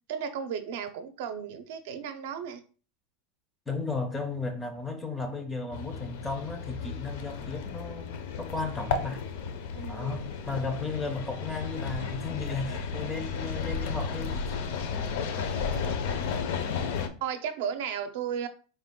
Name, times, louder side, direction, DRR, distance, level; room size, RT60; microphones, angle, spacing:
voice 1, 0.0-2.6 9.7-10.2 17.2-18.5, right 7 dB, 60° right, 0.5 m, -34 dB
voice 2, 3.7-8.1 8.4-9.2 9.9-14.6, left 3 dB, 10° left, 0.5 m, -34 dB
sound 1, 5.7-17.1, left 5 dB, 60° left, 0.6 m, -33 dB
4.2 x 2.3 x 3.6 m
supercardioid pair, 170°, 0 cm